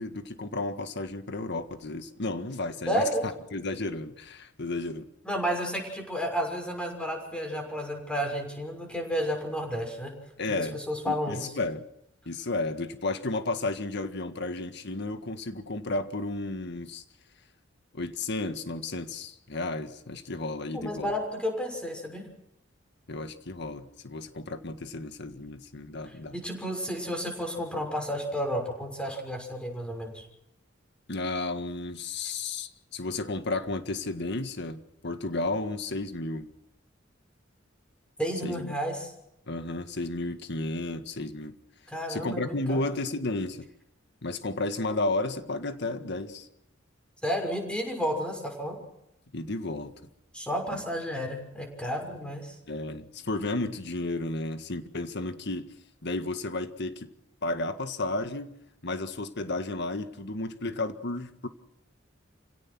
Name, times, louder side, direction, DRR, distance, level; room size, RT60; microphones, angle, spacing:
voice 1, 0.0-5.1 10.4-10.8 11.1-11.9 12.3-17.0 17.9-21.1 23.1-26.4 31.1-36.5 38.4-38.7 39.5-41.6 42.1-43.7 44.2-46.5 49.3-50.0 50.7-50.8 52.7-55.7 56.0-57.1 57.4-58.5 58.8-61.5, left 2 dB, 60° left, 9 dB, 1.8 m, -33 dB
voice 2, 2.9-3.3 5.2-10.1 10.6-11.4 20.7-22.3 26.3-30.2 38.2-39.1 41.9-42.8 47.2-48.8 50.3-52.6, equal, 5° left, 3 dB, 6.2 m, -31 dB
28.5 x 17.0 x 6.2 m, 0.82 s
head